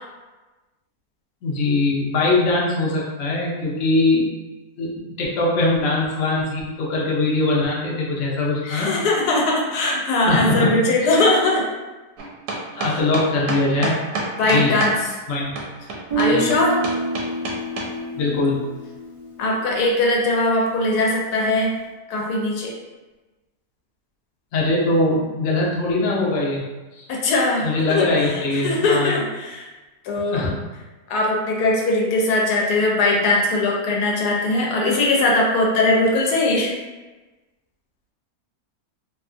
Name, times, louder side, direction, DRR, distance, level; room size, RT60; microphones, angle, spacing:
voice 1, 1.4-4.3 4.8-8.9 10.3-10.7 11.0-11.1 12.8-14.0 14.4-14.7 15.3-15.5 16.3-16.4 18.2-18.6 24.5-26.6 27.0-27.1 27.6-29.1 30.3-30.5, left 2 dB, 65° left, -4 dB, 0.9 m, -21 dB
voice 2, 8.6-11.6 12.8-13.0 14.4-14.9 16.2-16.8 19.4-21.7 22.1-22.7 27.1-29.7 30.0-30.4 31.1-36.7, left 2 dB, 90° left, -2 dB, 1.2 m, -20 dB
sound 1, 12.2-15.0 15.6-17.9, right 3 dB, 80° right, 1.1 m, -27 dB
Guitar, 16.1-20.0, right 1 dB, 45° right, 0.5 m, -27 dB
2.8 x 2.3 x 2.4 m, 1.2 s
omnidirectional pair, 1.6 m